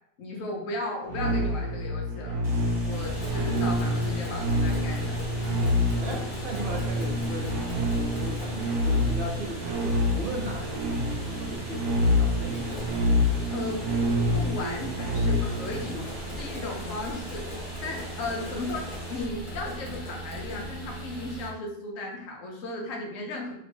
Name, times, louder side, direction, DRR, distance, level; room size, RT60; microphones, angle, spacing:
voice 1, 0.2-2.4 2.8-5.5 13.5-13.8 14.3-16.0 16.4-17.5 17.8-23.5, left 2 dB, 60° left, 0 dB, 1.2 m, -35 dB
sound 1, 1.1-15.9, left 1 dB, 90° right, 1.2 m, -27 dB
Water, 2.4-19.2, right 1 dB, 25° right, 0.6 m, -44 dB
sound 2, 2.9-21.5, right 1 dB, 35° left, 1.3 m, -38 dB
voice 2, 6.0-12.9 15.9-16.6, right 1 dB, 45° right, 0 dB, 0.9 m, -38 dB
3.1 x 3.0 x 4.3 m, 0.74 s
omnidirectional pair, 1.6 m